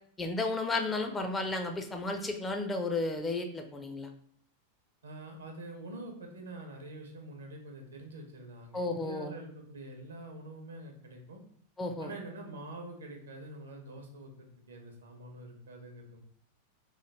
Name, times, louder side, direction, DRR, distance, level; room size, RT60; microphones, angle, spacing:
voice 1, 0.2-4.1 8.7-9.3 11.8-12.1, left 2 dB, 15° left, 5 dB, 0.4 m, -33 dB
voice 2, 5.0-11.4 12.0-16.2, right 1 dB, 70° right, 3 dB, 0.6 m, -45 dB
3.1 x 2.2 x 3.2 m, 0.62 s
figure-of-eight pair, 90°, 0 cm